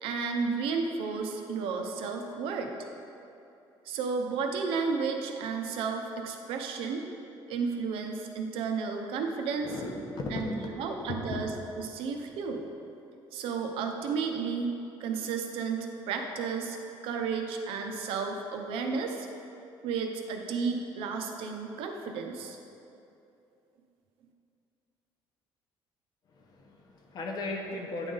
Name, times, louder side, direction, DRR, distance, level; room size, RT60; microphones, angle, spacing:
voice 1, 0.0-2.7 3.9-7.0 7.5-9.7 10.3-11.5 11.8-12.6 13.3-16.8 17.0-19.3 19.8-22.6, right 5 dB, 80° right, 3 dB, 0.7 m, -32 dB
voice 2, 9.6-11.5 26.3-28.1, left 2 dB, 50° left, 1 dB, 0.9 m, -37 dB
8.9 x 3.9 x 3.8 m, 2.7 s
cardioid pair, 150°, 9 cm